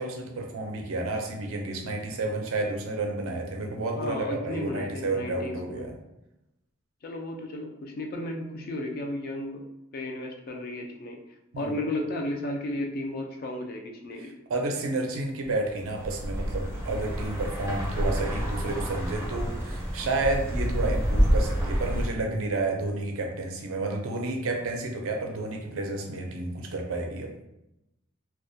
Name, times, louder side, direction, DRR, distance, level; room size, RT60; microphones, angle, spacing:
voice 1, 0.0-5.9 11.5-11.7 14.2-27.3, right 2 dB, 70° right, 2 dB, 0.4 m, -31 dB
voice 2, 3.9-5.9 7.0-9.6 9.9-11.2 11.6-14.3, left 1 dB, 45° left, 2 dB, 0.3 m, -34 dB
sound 1, 15.8-22.1, equal, 15° right, 0.5 m, -28 dB
2.2 x 2.1 x 2.6 m, 0.89 s
head